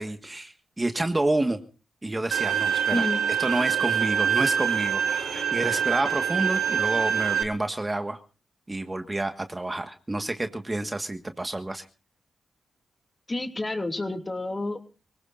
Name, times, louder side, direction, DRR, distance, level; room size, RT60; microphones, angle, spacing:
voice 1, 0.0-1.6 2.0-3.1 3.4-8.2 8.7-11.9, right 2 dB, 20° right, 6 dB, 1.6 m, -29 dB
Bowed string instrument, 2.3-7.4, right 8 dB, 85° right, 1.5 m, -25 dB
voice 2, 2.9-3.2 13.3-14.8, left 2 dB, 25° left, 5 dB, 2.6 m, -29 dB
25.0 x 18.0 x 2.6 m, 0.35 s
cardioid pair, 65°, 0 cm